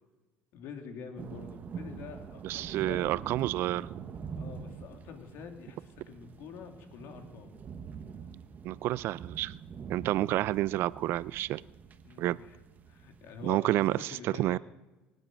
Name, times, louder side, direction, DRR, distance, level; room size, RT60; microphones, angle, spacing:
voice 1, 0.5-3.4 4.4-7.5 12.0-12.6 12.9-14.6, left 6 dB, 65° left, 4 dB, 2.7 m, -46 dB
sound 1, 1.2-13.6, right 6 dB, 40° right, 1.2 m, -45 dB
voice 2, 2.4-4.0 8.6-9.5 9.9-11.6 12.2-12.4 13.4-14.6, right 15 dB, 60° right, 20 dB, 0.4 m, -29 dB
23.5 x 8.0 x 6.2 m, 1.1 s
supercardioid pair, 85°, 4 cm